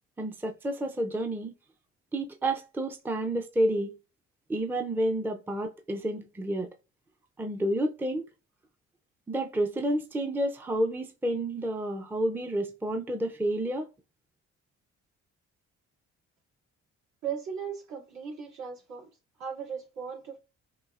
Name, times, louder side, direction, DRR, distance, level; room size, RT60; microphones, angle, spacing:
voice 1, 0.2-1.5 2.1-3.9 4.5-6.7 7.4-8.3 9.3-13.9, right 1 dB, 5° right, 0.5 m, -30 dB
voice 2, 17.2-19.1 19.4-20.4, right 7 dB, 70° right, 2.3 m, -37 dB
6.1 x 2.5 x 2.4 m
cardioid pair, 90°, 30 cm